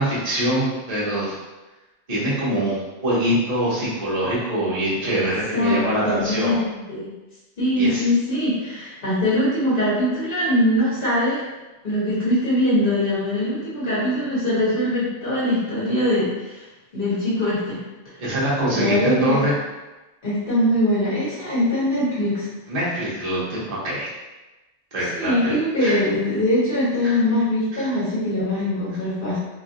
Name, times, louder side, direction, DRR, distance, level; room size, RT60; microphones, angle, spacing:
voice 1, 0.0-1.3 2.1-6.6 7.8-8.0 18.2-19.5 22.7-24.1 24.9-26.0 27.0-27.1 27.7-27.8, right 1 dB, 35° right, -8 dB, 0.9 m, -24 dB
voice 2, 5.0-7.1 7.6-11.4 11.8-16.6 16.9-17.8 18.7-19.4 20.2-22.5 25.2-29.4, left 1 dB, 50° left, -10 dB, 1.5 m, -22 dB
2.9 x 2.5 x 2.5 m, 1.1 s
omnidirectional pair, 1.2 m